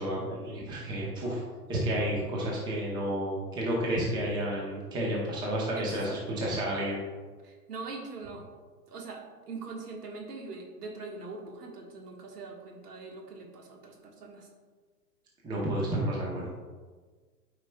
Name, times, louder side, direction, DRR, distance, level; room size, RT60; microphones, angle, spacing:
voice 1, 0.0-1.4 1.7-7.0 15.4-16.5, right 1 dB, 10° right, -3 dB, 0.8 m, -31 dB
voice 2, 5.7-6.4 7.4-8.5 8.9-14.5, right 3 dB, 70° right, 0 dB, 1.5 m, -42 dB
8.8 x 4.9 x 2.3 m, 1.4 s
hypercardioid pair, 125°, 48 cm